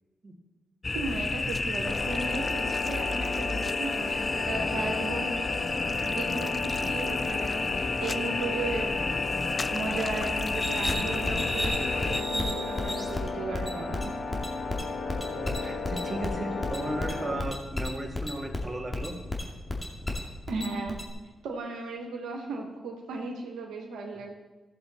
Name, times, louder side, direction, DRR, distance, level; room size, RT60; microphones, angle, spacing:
sound 1, 0.8-12.2, left 3 dB, 40° left, 0.4 m, -31 dB
voice 1, 0.9-9.1 9.7-14.1 20.5-21.0 21.4-24.3, right 3 dB, 85° right, 1 dB, 1.2 m, -36 dB
sound 2, 1.8-17.4, left 4 dB, 65° left, 1.3 m, -35 dB
sound 3, 10.5-21.1, left 1 dB, 25° left, 2.3 m, -33 dB
voice 2, 15.3-19.2, right 1 dB, 25° right, 1 dB, 2.3 m, -35 dB
14.5 x 7.1 x 4.1 m, 1.2 s
supercardioid pair, 45°, 0 cm